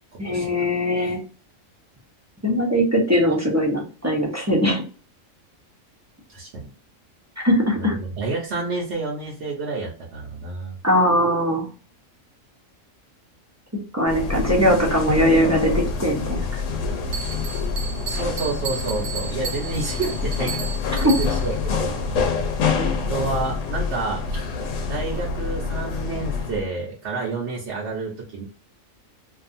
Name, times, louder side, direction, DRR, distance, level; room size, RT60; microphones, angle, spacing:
voice 1, 0.2-1.2 2.4-4.8 7.4-7.9 10.8-11.7 13.9-16.6 21.0-21.1 22.7-22.9, equal, 15° right, -3 dB, 0.6 m, -20 dB
voice 2, 6.3-6.7 7.7-10.7 18.0-22.4 23.1-24.5 24.9-28.4, right 3 dB, 60° right, -4 dB, 0.9 m, -29 dB
sound 1, 14.1-26.7, left 5 dB, 70° left, 0.9 m, -26 dB
Bell, 17.1-21.6, right 6 dB, 75° right, 1.3 m, -34 dB
2.6 x 2.3 x 2.6 m, 0.36 s
omnidirectional pair, 1.4 m